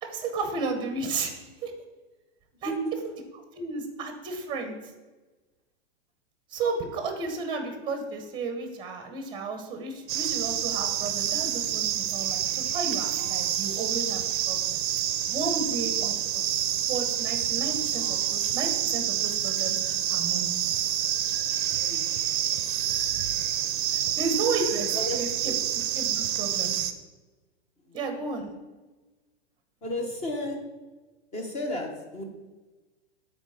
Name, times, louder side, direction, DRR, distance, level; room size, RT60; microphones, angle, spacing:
voice 1, 0.0-1.3 1.6-1.7 2.6-2.7 3.5-4.8 6.5-14.2 14.5-14.8 15.3-16.4 16.9-20.5 23.9-25.5 25.9-26.8 27.9-28.5, right 3 dB, 15° right, 5 dB, 0.9 m, -33 dB
voice 2, 2.5-2.9 21.8-22.1 23.9-24.2 24.9-25.2 25.4-25.6 27.8-28.0 29.8-30.6 31.3-32.2, equal, 20° left, 3 dB, 1.0 m, -33 dB
sound 1, 10.1-26.9, right 11 dB, 45° right, 0.5 m, -28 dB
8.2 x 4.4 x 4.9 m, 1.2 s
supercardioid pair, 155°, 35 cm